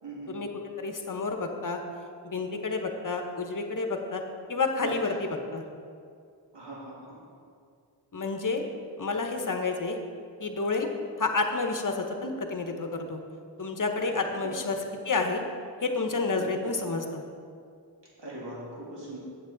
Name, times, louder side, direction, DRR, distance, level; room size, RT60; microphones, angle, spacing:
voice 1, 0.0-0.3 4.8-5.2 6.5-7.2 14.4-14.5 18.2-19.2, right 1 dB, 85° right, -6 dB, 2.1 m, -40 dB
voice 2, 0.8-1.8 2.2-4.2 4.5-5.6 8.1-8.6 9.0-10.0 10.4-10.9 11.2-13.2 13.6-14.8 15.0-15.4 15.8-17.2, left 3 dB, 50° left, 4 dB, 0.9 m, -29 dB
8.0 x 7.9 x 3.9 m, 2.3 s
wide cardioid pair, 45°, 41 cm